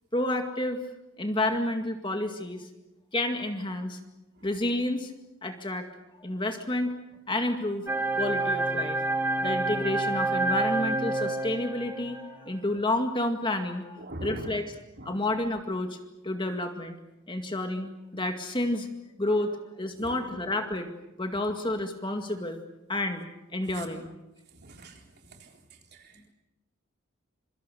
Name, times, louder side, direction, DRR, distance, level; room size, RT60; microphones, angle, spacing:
voice 1, 0.1-0.8 1.2-2.7 3.1-4.0 4.4-5.1 5.4-5.9 6.2-7.0 7.3-7.9 8.2-9.0 9.4-14.7 15.1-16.0 16.2-17.0 17.3-18.9 19.2-20.9 21.2-22.6 22.9-23.3 23.5-24.1, left 1 dB, 20° left, 5 dB, 2.1 m, -30 dB
sound 1, 7.9-12.3, right 2 dB, 10° right, 1.2 m, -28 dB
voice 2, 14.0-14.5 15.0-15.2 20.0-20.2 23.7-23.9 24.5-25.0 25.3-25.5 25.9-26.3, right 1 dB, 50° right, 2 dB, 3.9 m, -42 dB
26.5 x 24.0 x 6.9 m, 0.96 s
head